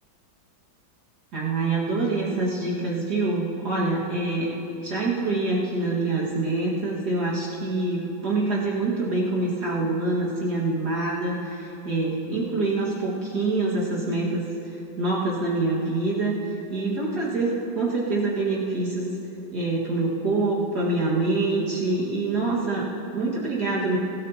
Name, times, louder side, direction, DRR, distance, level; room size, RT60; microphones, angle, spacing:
voice 1, 1.3-4.5 4.8-16.4 16.7-19.1 19.5-24.0, right 2 dB, 55° right, -6 dB, 2.3 m, -25 dB
23.0 x 13.5 x 2.9 m, 2.7 s
omnidirectional pair, 2.1 m